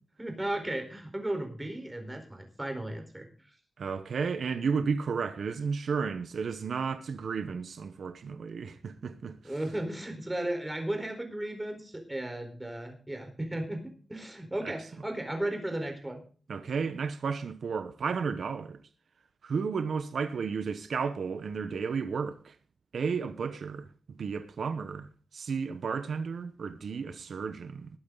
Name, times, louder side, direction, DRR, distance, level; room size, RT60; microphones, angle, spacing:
voice 1, 0.2-3.3 9.4-13.8 14.1-16.2, right 1 dB, 15° right, 4.3 m, -35 dB
voice 2, 3.8-9.3 14.6-14.8 16.5-18.8 19.4-22.5 22.9-23.9 24.2-27.9, right 5 dB, 80° right, 1.1 m, -33 dB
20.5 x 9.0 x 4.0 m
wide cardioid pair, 130°, 0 cm